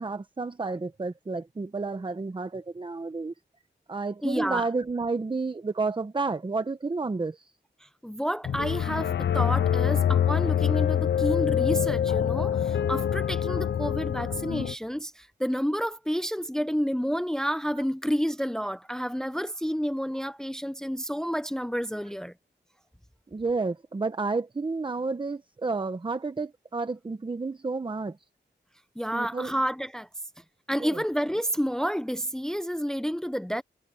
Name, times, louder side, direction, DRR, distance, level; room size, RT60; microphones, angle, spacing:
voice 1, 0.0-3.3 3.9-7.5 23.3-28.2 29.1-29.5 30.8-31.0, right 3 dB, 25° right, 1.0 m, -31 dB
voice 2, 4.2-4.7 7.8-22.3 29.0-30.1 30.7-33.6, equal, 5° left, 0.8 m, -30 dB
sound 1, 8.4-14.7, left 9 dB, 65° left, 0.5 m, -25 dB
wide cardioid pair, 115°, 19 cm